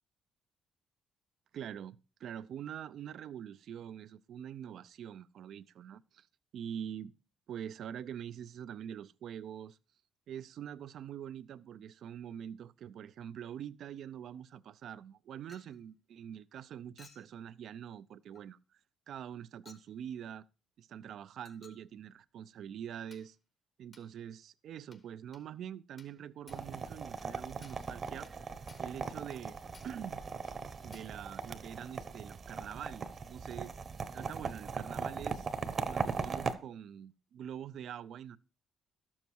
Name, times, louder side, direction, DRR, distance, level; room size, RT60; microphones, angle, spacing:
voice 1, 1.5-6.3 6.5-7.1 7.5-9.8 10.3-18.8 19.1-20.5 20.8-23.4 23.8-28.3 28.8-30.2 30.8-33.7 34.1-35.5 35.9-38.4, right 9 dB, 70° right, 0.4 m, -45 dB
Chink clink, 15.5-15.8 17.0-17.3 18.3-18.5 19.7-19.9 21.4-21.9 23.1-23.3 23.9-24.1 24.9-25.1 25.3-25.5 26.0-26.2 26.5-26.7 27.2-27.3 27.6-27.9 28.2-28.4 28.7-29.0 29.3-29.5 29.7-30.0 30.5-30.6 30.9-31.2, left 4 dB, 40° left, 1.1 m, -59 dB
sound 1, 26.5-36.5, right 5 dB, 45° right, 0.9 m, -39 dB
12.0 x 7.2 x 4.5 m
cardioid pair, 90°, 0 cm